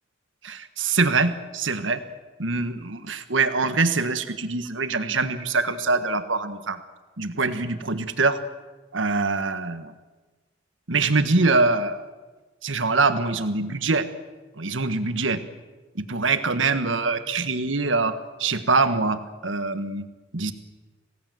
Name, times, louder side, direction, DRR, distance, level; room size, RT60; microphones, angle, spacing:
voice 1, 0.4-2.0 2.4-6.8 7.2-8.4 8.9-9.9 10.9-12.0 12.6-14.1 14.6-15.4 15.9-20.1 20.3-20.5, right 3 dB, 85° right, 9 dB, 1.6 m, -24 dB
27.0 x 17.5 x 7.8 m, 1.3 s
head